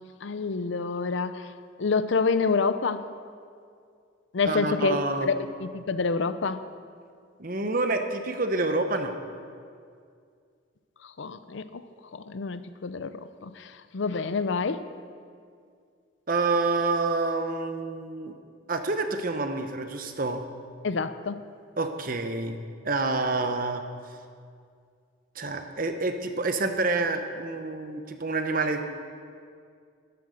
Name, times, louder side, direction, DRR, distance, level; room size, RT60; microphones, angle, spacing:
voice 1, 0.2-1.5 1.8-3.0 4.3-6.6 11.0-11.8 12.1-14.9 20.8-21.4, left 4 dB, 70° left, 12 dB, 0.6 m, -28 dB
voice 2, 4.4-5.3 7.4-9.2 16.3-18.3 18.7-20.4 21.8-22.6 22.8-23.8 25.3-28.8, right 3 dB, 45° right, 7 dB, 0.9 m, -28 dB
12.0 x 10.5 x 6.5 m, 2.2 s
head